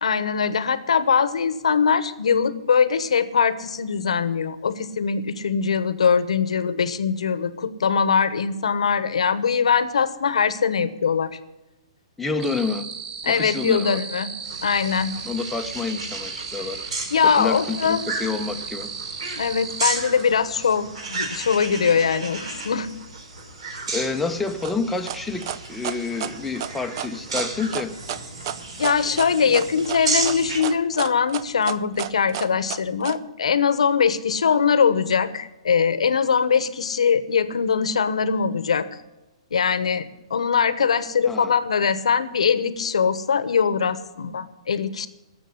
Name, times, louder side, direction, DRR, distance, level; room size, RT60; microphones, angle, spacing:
voice 1, 0.0-11.3 13.2-14.3 14.6-15.1 17.1-18.0 19.4-22.9 28.8-38.9 39.5-45.1, left 6 dB, 90° left, 14 dB, 1.0 m, -22 dB
voice 2, 12.2-12.9 13.3-14.0 15.2-18.9 23.9-28.0 41.2-41.6, left 4 dB, 5° left, 4 dB, 0.8 m, -28 dB
sound 1, 12.4-19.8, right 6 dB, 20° right, 0.9 m, -35 dB
sound 2, 14.4-30.6, right 3 dB, 70° right, 3.7 m, -33 dB
sound 3, 24.6-33.2, right 10 dB, 45° right, 0.6 m, -31 dB
12.5 x 7.2 x 9.7 m, 1.0 s
hypercardioid pair, 150°, 3 cm